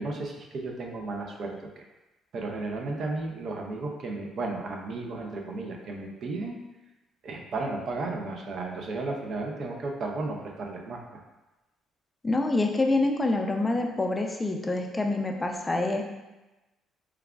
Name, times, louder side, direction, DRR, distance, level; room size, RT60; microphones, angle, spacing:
voice 1, 0.0-1.8 2.3-6.6 7.2-11.0, right 3 dB, 60° right, 1 dB, 0.5 m, -34 dB
voice 2, 12.2-16.0, left 2 dB, 20° left, 3 dB, 0.4 m, -26 dB
4.6 x 2.3 x 2.3 m, 1.1 s
supercardioid pair, 65°, 0 cm